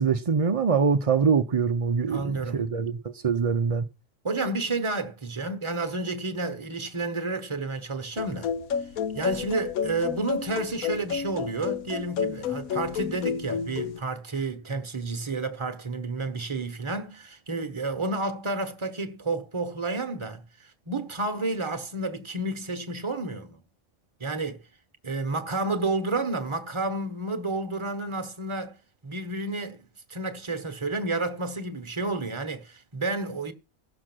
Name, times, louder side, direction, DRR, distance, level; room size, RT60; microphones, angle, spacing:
voice 1, 0.0-3.9, right 5 dB, 45° right, 0.4 m, -24 dB
voice 2, 2.1-2.7 4.2-8.5 9.1-23.6 24.2-24.6 25.0-28.8 29.0-33.5, right 2 dB, 25° right, 1.0 m, -31 dB
sound 1, 8.2-14.0, left 7 dB, 85° left, 1.2 m, -31 dB
15.5 x 6.3 x 6.0 m
omnidirectional pair, 1.5 m